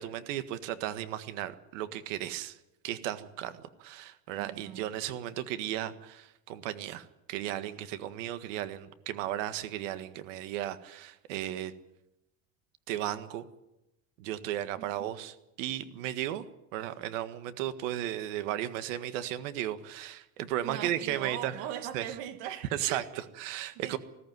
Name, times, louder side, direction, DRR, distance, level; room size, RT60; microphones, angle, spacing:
voice 1, 0.0-2.6 2.8-11.7 12.9-13.5 14.2-16.4 16.7-21.6 21.9-22.0 22.7-23.0 23.4-24.0, right 12 dB, 80° right, 1.7 m, -35 dB
voice 2, 4.4-4.8 14.8-15.2 20.6-23.2 23.5-24.0, right 10 dB, 55° right, 1.6 m, -40 dB
20.0 x 15.0 x 9.5 m
cardioid pair, 170°, 37 cm